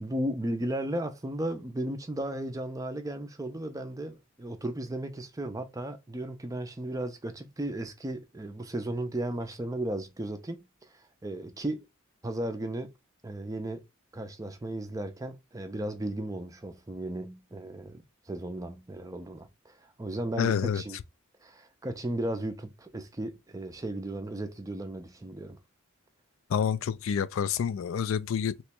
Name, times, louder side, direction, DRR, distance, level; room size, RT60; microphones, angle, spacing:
voice 1, 0.0-10.9 11.2-11.9 12.2-12.9 13.2-13.8 14.1-21.0 21.4-25.6, right 1 dB, 15° right, 0.4 m, -35 dB
voice 2, 20.4-21.0 26.5-28.6, left 7 dB, 70° left, 0.3 m, -28 dB
3.0 x 2.2 x 4.2 m
head